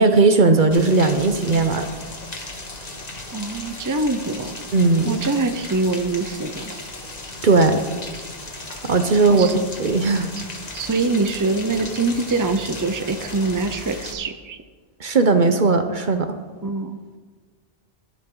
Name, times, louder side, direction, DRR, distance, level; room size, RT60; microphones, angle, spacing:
voice 1, 0.0-1.9 4.7-5.2 7.4-7.8 8.8-10.3 15.0-16.4, right 3 dB, 50° right, 8 dB, 1.0 m, -17 dB
Rain, 0.7-14.1, left 2 dB, 40° left, 1.5 m, -36 dB
voice 2, 3.3-4.6 5.0-6.7 9.3-9.5 10.4-10.5 10.7-14.6 16.6-17.0, right 3 dB, 20° right, 8 dB, 0.7 m, -24 dB
23.0 x 8.8 x 3.9 m, 1.4 s
omnidirectional pair, 1.1 m